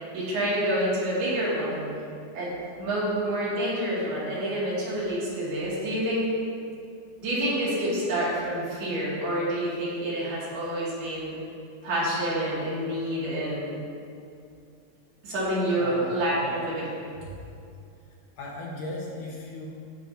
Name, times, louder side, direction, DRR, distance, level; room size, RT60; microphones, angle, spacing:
voice 1, 0.1-1.9 2.3-6.3 7.2-11.3 11.8-13.8 15.2-16.8, right 1 dB, 85° right, -8 dB, 4.3 m, -28 dB
voice 2, 15.7-16.2 16.4-16.7 18.4-19.7, left 2 dB, 70° left, -4 dB, 2.4 m, -37 dB
16.0 x 6.0 x 2.7 m, 2.5 s
omnidirectional pair, 4.4 m